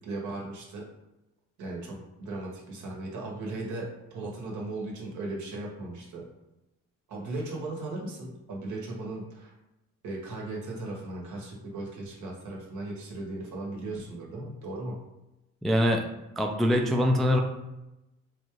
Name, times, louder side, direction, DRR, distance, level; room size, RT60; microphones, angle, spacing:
voice 1, 0.0-0.9 1.6-6.3 7.1-9.5 10.0-15.0, right 2 dB, 75° right, -1 dB, 1.1 m, -37 dB
voice 2, 15.6-16.0 16.4-17.4, left 1 dB, ahead, 2 dB, 0.3 m, -23 dB
3.9 x 2.4 x 3.0 m, 0.95 s
cardioid pair, 90°, 30 cm